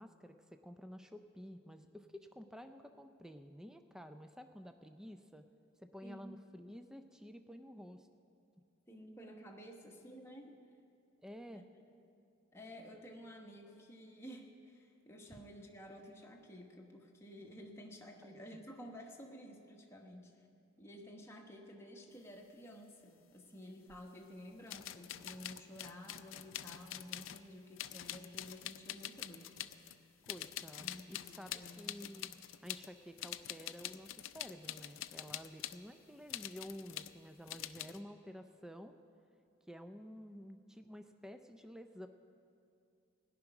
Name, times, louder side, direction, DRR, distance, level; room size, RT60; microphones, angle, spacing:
voice 1, 0.0-5.5 5.8-8.1 11.2-11.6 15.3-15.4 18.2-18.6 30.3-32.3 32.6-39.0 39.7-42.1, equal, 5° right, 8 dB, 0.4 m, -51 dB
voice 2, 6.0-6.3 8.9-10.6 11.5-11.8 12.5-20.5 20.8-29.6 30.8-31.8, equal, 15° left, 0 dB, 1.1 m, -52 dB
sound 1, 23.9-24.0 24.7-27.5 27.8-30.0 30.3-32.9 33.2-35.8 36.3-37.2 37.5-38.0, left 12 dB, 85° left, 0.4 m, -46 dB
17.0 x 6.0 x 9.8 m, 2.5 s
head